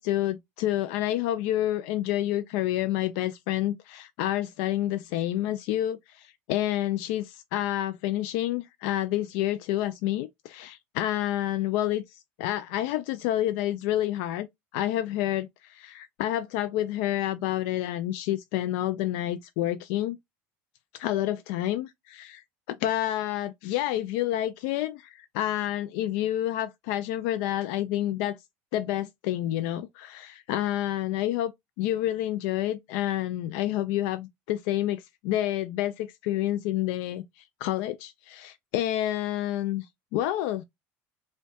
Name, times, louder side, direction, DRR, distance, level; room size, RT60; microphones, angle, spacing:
voice 1, 0.0-14.5 14.7-20.2 20.9-28.4 28.7-31.5 31.8-40.6, left 13 dB, 75° left, 0.3 m, -29 dB
5.2 x 2.3 x 2.2 m
cardioid pair, 145°, 6 cm